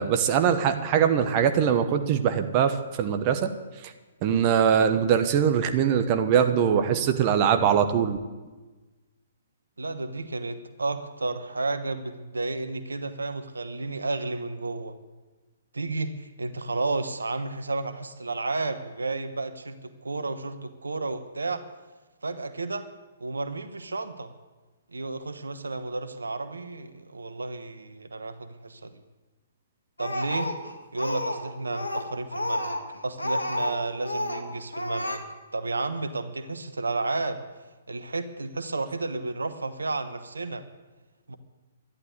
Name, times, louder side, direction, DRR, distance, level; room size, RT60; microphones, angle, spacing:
voice 1, 0.0-3.5 4.2-8.2, right 8 dB, 35° right, 8 dB, 1.1 m, -22 dB
voice 2, 9.8-14.9 15.7-21.6 22.2-22.9 23.2-24.3 24.9-29.0 30.0-30.5 30.9-32.8 33.0-35.2 35.5-37.4 37.9-40.6 41.3-41.4, right 3 dB, 80° right, 10 dB, 1.1 m, -32 dB
Speech, 30.0-31.4 31.7-33.8 34.0-34.4 34.7-35.2, left 1 dB, 90° left, 1.8 m, -30 dB
12.5 x 11.0 x 8.2 m, 1.2 s
figure-of-eight pair, 125°, 0 cm